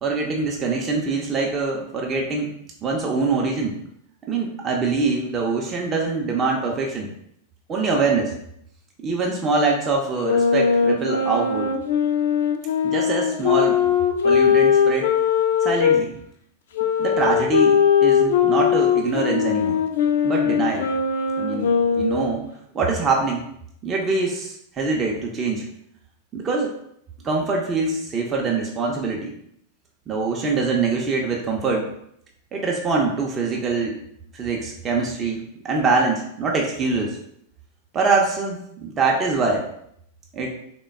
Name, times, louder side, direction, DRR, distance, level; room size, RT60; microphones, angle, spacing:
voice 1, 0.0-2.5 2.8-3.7 4.3-7.1 7.7-8.3 9.0-11.7 12.8-13.8 14.2-15.1 15.6-16.1 17.0-19.8 20.2-20.9 21.4-22.4 22.7-23.4 23.8-25.7 26.3-26.7 27.2-29.3 30.1-31.9 32.5-34.0 34.3-37.2 37.9-39.6 40.3-40.6, right 4 dB, 25° right, -1 dB, 0.5 m, -24 dB
sound 1, 10.2-16.0 16.7-22.4, left 7 dB, 60° left, 0.3 m, -20 dB
3.3 x 2.2 x 3.3 m, 0.73 s
figure-of-eight pair, 90°, 0 cm